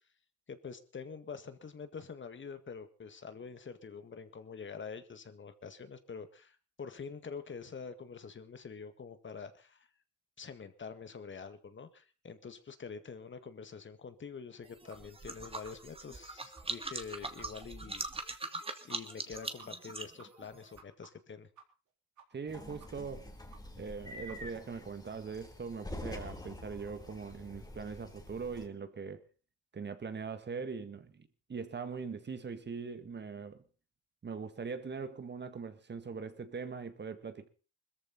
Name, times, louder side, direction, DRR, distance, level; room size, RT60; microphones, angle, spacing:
voice 1, 0.5-9.9 10.4-18.0 18.8-21.5, left 5 dB, 40° left, 1.9 m, -46 dB
sound 1, 14.6-20.8, right 2 dB, 20° right, 2.1 m, -42 dB
sound 2, 14.9-15.0 15.3-15.4 15.6-15.7 16.1-16.2 16.5-16.6 16.9-17.0 17.4-17.5 17.7-17.8 18.1-18.2 18.5-18.6 18.9-19.0 19.3-19.4 19.6-19.9 20.2-21.9 22.2-22.5 22.8-23.2 23.5-23.6 23.9-24.0 24.3-24.4, right 6 dB, 70° right, 3.6 m, -56 dB
voice 2, 22.3-23.3 23.8-29.2 29.7-33.6 34.2-37.5, right 5 dB, 35° right, 1.8 m, -41 dB
sound 3, 22.5-28.7, left 1 dB, 15° left, 3.0 m, -47 dB
20.5 x 14.5 x 4.3 m
cardioid pair, 90°, 30 cm